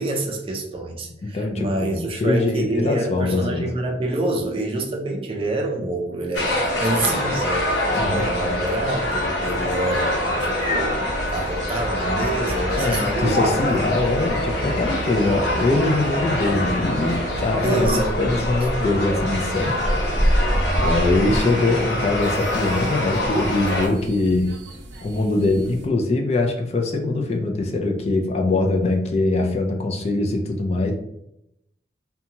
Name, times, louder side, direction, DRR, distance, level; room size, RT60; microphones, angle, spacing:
voice 1, 0.0-13.4 13.7-13.8 17.6-18.5, right 1 dB, 30° right, 1 dB, 0.4 m, -27 dB
voice 2, 1.2-3.7 7.9-8.3 12.8-19.7 20.1-20.2 20.8-24.5 25.0-30.9, left 2 dB, 35° left, 2 dB, 0.3 m, -22 dB
sound 1, 6.3-23.9, left 1 dB, 80° left, 0.8 m, -24 dB
sound 2, 7.9-25.9, equal, 90° right, 0.5 m, -35 dB
2.7 x 2.2 x 2.8 m, 0.81 s
head